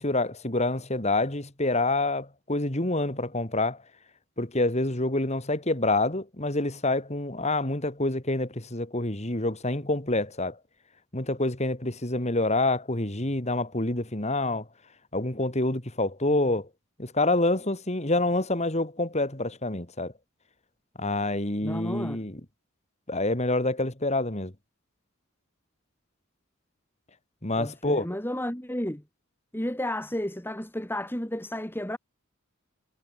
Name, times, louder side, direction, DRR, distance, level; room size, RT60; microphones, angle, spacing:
voice 1, 0.0-3.8 4.4-10.6 11.1-14.7 15.1-16.7 17.0-20.1 21.0-22.4 23.1-24.5 27.4-28.1, left 2 dB, 30° left, 2.6 m, -27 dB
voice 2, 21.6-22.2 27.6-29.0 29.5-32.0, left 1 dB, 10° left, 3.2 m, -32 dB
head